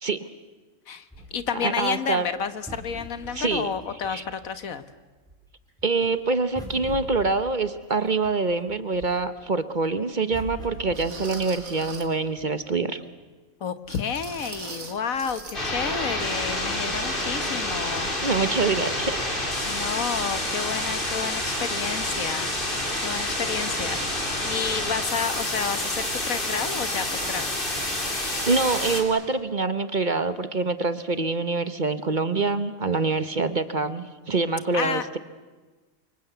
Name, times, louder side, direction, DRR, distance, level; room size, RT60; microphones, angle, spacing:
voice 1, 0.9-4.8 13.6-18.1 19.6-22.5 23.0-27.6 34.7-35.0, left 7 dB, 80° left, 12 dB, 1.7 m, -31 dB
sound 1, 1.1-4.9 5.2-9.3 9.7-12.7 13.3-13.4 13.6-17.4 17.8-17.9 19.0-19.4 20.1-20.2, right 1 dB, 5° left, 5.4 m, -43 dB
voice 2, 1.6-2.3 3.3-3.7 4.1-4.2 5.8-13.0 18.2-19.4 28.2-35.2, right 3 dB, 40° right, 12 dB, 1.1 m, -25 dB
sound 2, 9.0-9.1 9.8-9.9 10.9-12.2 13.9-15.6 15.9-16.0 16.5-16.6, right 4 dB, 80° right, 2.6 m, -40 dB
sound 3, 15.5-29.0, left 1 dB, 40° left, 3.9 m, -28 dB
28.5 x 25.0 x 8.2 m, 1.3 s
omnidirectional pair, 1.4 m